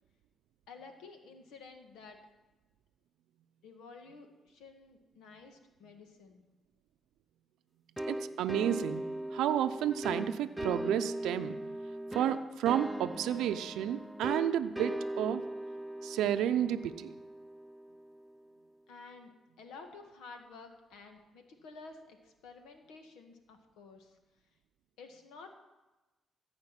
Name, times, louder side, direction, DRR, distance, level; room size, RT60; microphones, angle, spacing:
voice 1, 0.7-2.2 3.6-6.4 18.9-24.2 25.0-25.5, left 4 dB, 90° left, 5 dB, 1.6 m, -52 dB
sound 1, 8.0-18.4, right 1 dB, 5° right, 0.4 m, -39 dB
voice 2, 8.1-9.0 9.3-11.6 12.1-15.4 16.0-17.2, right 10 dB, 85° right, 9 dB, 0.6 m, -31 dB
14.5 x 5.2 x 9.0 m, 1.1 s
cardioid pair, 90°, 0 cm